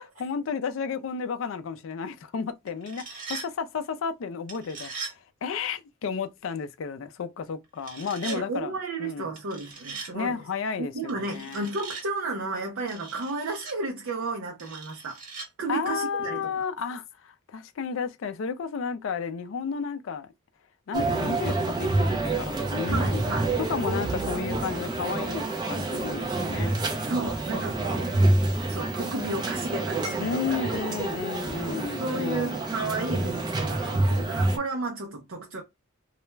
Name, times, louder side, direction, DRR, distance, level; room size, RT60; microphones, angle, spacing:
voice 1, 0.2-9.3 10.1-11.7 15.7-20.3 20.9-23.2 23.6-26.8 30.2-32.6, left 6 dB, 65° left, 0.4 m, -32 dB
sound 1, 2.7-3.5 4.5-5.2 7.8-8.4 9.4-10.1 11.1-12.1 12.9-13.7 14.6-15.5, right 4 dB, 40° right, 1.2 m, -40 dB
voice 2, 8.2-10.4 10.8-15.2 15.6-16.6 22.9-23.5 27.1-28.1 28.7-30.3 31.6-35.6, right 3 dB, 70° right, 0.5 m, -33 dB
sound 2, 20.9-34.6, right 2 dB, 20° right, 0.4 m, -27 dB
2.3 x 2.1 x 3.1 m
head